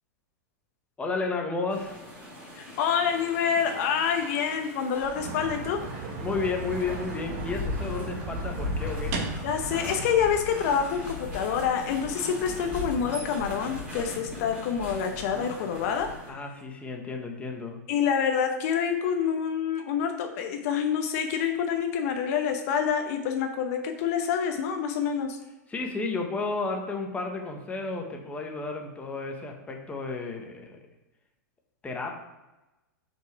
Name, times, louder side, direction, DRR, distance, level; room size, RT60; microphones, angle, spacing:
voice 1, 1.0-2.0 6.2-9.2 16.3-17.8 25.7-30.8 31.8-32.2, left 3 dB, 15° left, 2 dB, 1.1 m, -32 dB
sound 1, 1.7-16.3, left 2 dB, 10° right, 2.5 m, -38 dB
voice 2, 2.6-5.8 9.4-16.1 17.9-25.4, left 7 dB, 55° left, 5 dB, 0.8 m, -27 dB
sound 2, 5.1-10.1, right 4 dB, 55° right, 1.3 m, -36 dB
5.7 x 4.6 x 4.6 m, 1.0 s
hypercardioid pair, 125°, 10 cm